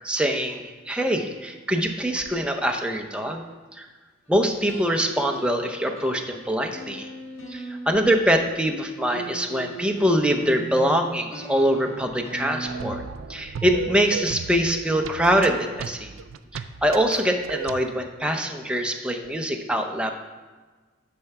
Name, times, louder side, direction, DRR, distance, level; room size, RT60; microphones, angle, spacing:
voice 1, 0.0-3.4 3.8-3.9 4.3-7.1 7.5-13.0 13.3-16.1 16.5-20.1, equal, 5° right, 3 dB, 0.6 m, -24 dB
sound 1, 4.7-8.2 9.1-12.9, right 2 dB, 75° left, 1.3 m, -38 dB
sound 2, 12.6-17.8, right 6 dB, 90° right, 0.4 m, -35 dB
10.0 x 4.4 x 5.8 m, 1.3 s
head